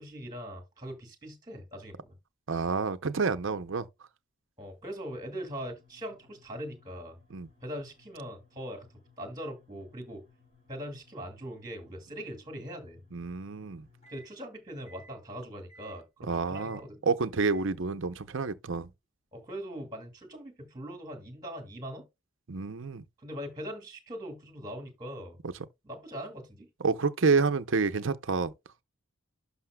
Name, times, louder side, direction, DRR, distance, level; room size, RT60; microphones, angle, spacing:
voice 1, 0.0-2.1 4.6-7.2 7.6-8.9 9.2-10.2 10.7-13.0 14.1-17.0 19.3-22.0 23.2-25.4 25.8-26.7, equal, 20° right, 2.2 m, -41 dB
voice 2, 2.5-3.9 7.3-7.5 13.1-13.8 16.3-16.8 17.1-18.9 22.5-23.0 26.8-28.5, right 4 dB, 60° right, 0.7 m, -28 dB
sound 1, 5.5-14.4 14.9-15.2 15.7-16.0 16.5-16.9 17.4-17.7, equal, 35° left, 4.9 m, -61 dB
11.5 x 5.7 x 2.3 m
head